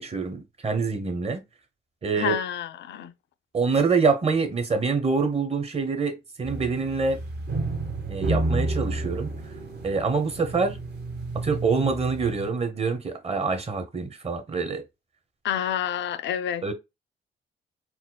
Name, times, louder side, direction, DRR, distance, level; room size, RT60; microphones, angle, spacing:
voice 1, 0.0-1.4 2.0-2.4 3.5-7.2 8.1-9.3 9.8-10.8 11.3-14.8 16.6-16.7, right 4 dB, 30° right, 0.9 m, -25 dB
voice 2, 2.1-3.1 15.4-16.6, left 10 dB, 65° left, 0.5 m, -28 dB
sound 1, 6.4-12.5, right 2 dB, 55° right, 1.1 m, -31 dB
4.3 x 2.0 x 2.2 m
cardioid pair, 90°, 20 cm